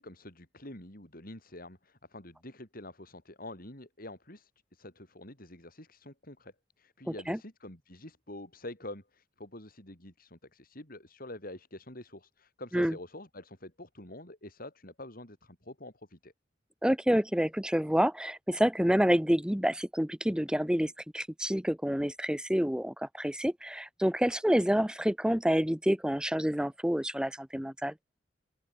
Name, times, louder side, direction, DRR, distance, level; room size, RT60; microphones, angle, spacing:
voice 1, 0.0-16.3, left 1 dB, 50° left, 7.6 m, -47 dB
voice 2, 16.8-27.9, equal, 5° right, 1.0 m, -28 dB
open air
head